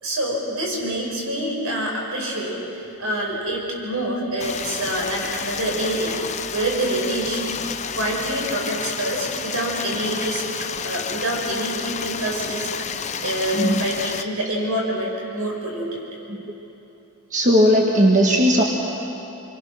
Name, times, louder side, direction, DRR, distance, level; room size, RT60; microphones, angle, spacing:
voice 1, 0.0-7.6 8.0-10.4 10.8-12.7 13.2-16.0, right 1 dB, 75° right, -2 dB, 6.4 m, -26 dB
Stream, 4.4-14.2, left 7 dB, 30° left, 0.6 m, -31 dB
voice 2, 17.3-18.6, equal, 35° right, -1 dB, 1.6 m, -17 dB
26.5 x 24.0 x 6.4 m, 3.0 s
head